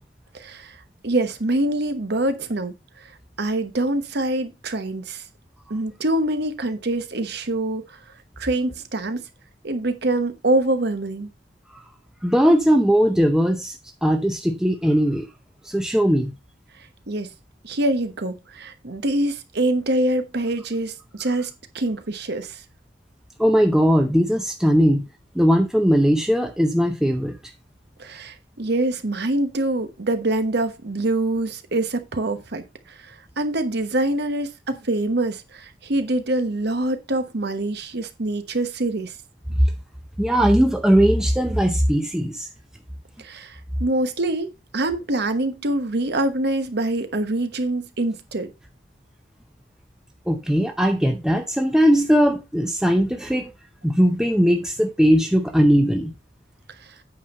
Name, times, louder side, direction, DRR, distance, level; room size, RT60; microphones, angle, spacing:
voice 1, 0.3-0.8 1.0-3.1 3.4-5.2 5.7-8.0 8.4-9.2 9.6-11.3 17.1-17.3 17.6-21.5 21.7-22.6 28.0-39.1 43.2-48.5 56.8-56.9, right 2 dB, 60° right, 1.1 m, -25 dB
voice 2, 12.2-13.8 14.0-15.3 15.7-16.3 23.4-25.1 25.3-27.4 40.2-42.5 50.3-53.5 53.8-56.1, equal, 5° right, 0.7 m, -19 dB
8.5 x 5.4 x 4.2 m
head